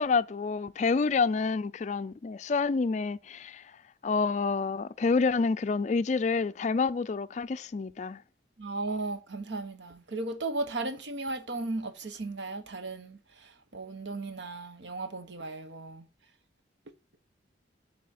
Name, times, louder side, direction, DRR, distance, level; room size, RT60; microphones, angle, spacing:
voice 1, 0.0-3.6 4.0-8.2, left 4 dB, 40° left, 0.3 m, -28 dB
voice 2, 8.6-16.1, right 2 dB, 70° right, 1.1 m, -36 dB
8.5 x 4.2 x 4.1 m
head